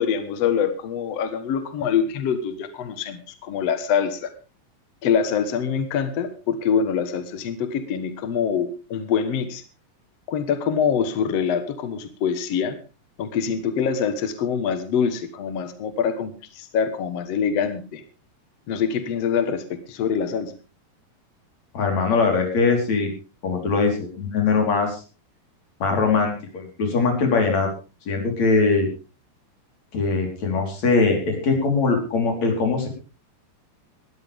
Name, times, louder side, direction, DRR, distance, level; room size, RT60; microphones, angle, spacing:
voice 1, 0.0-4.3 5.0-9.6 10.3-12.7 13.2-18.0 18.7-20.5, left 7 dB, 65° left, 9 dB, 1.5 m, -24 dB
voice 2, 21.7-23.1 23.4-25.0 25.8-27.7 28.1-28.9 29.9-32.9, left 4 dB, 40° left, 2 dB, 5.1 m, -21 dB
20.0 x 13.0 x 3.5 m, 0.33 s
omnidirectional pair, 4.9 m